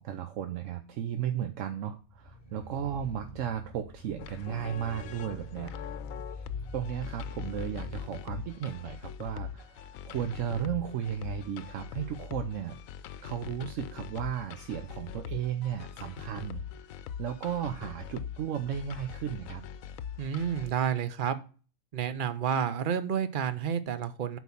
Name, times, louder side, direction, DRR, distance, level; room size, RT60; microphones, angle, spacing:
voice 1, 0.0-5.7 6.3-6.4 6.7-12.8 13.2-16.6 17.2-19.6, right 9 dB, 75° right, 8 dB, 1.1 m, -35 dB
sound 1, 2.0-8.1, left 3 dB, 25° left, 1.9 m, -43 dB
sound 2, 4.2-20.7, left 8 dB, 85° left, 1.0 m, -42 dB
voice 2, 20.2-21.4 21.9-24.4, right 8 dB, 45° right, 12 dB, 0.8 m, -30 dB
8.0 x 4.6 x 7.1 m, 0.37 s
omnidirectional pair, 1.4 m